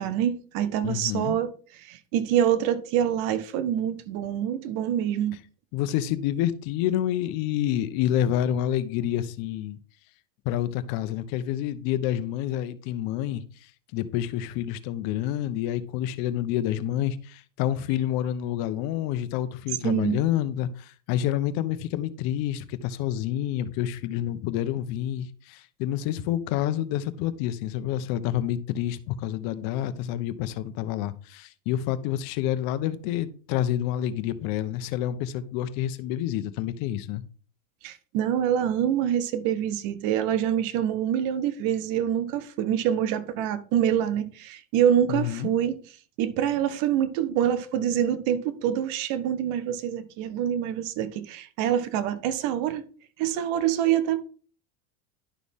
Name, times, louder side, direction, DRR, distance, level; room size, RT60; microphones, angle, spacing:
voice 1, 0.0-1.5 1.8-5.4 19.8-20.2 37.8-45.8 46.2-52.8 53.2-54.2, right 10 dB, 65° right, 1.4 m, -26 dB
voice 2, 0.8-1.3 5.7-9.8 10.4-13.4 13.9-37.2 45.1-45.5, left 11 dB, 60° left, 1.1 m, -28 dB
11.5 x 6.0 x 3.7 m
supercardioid pair, 100°, 38 cm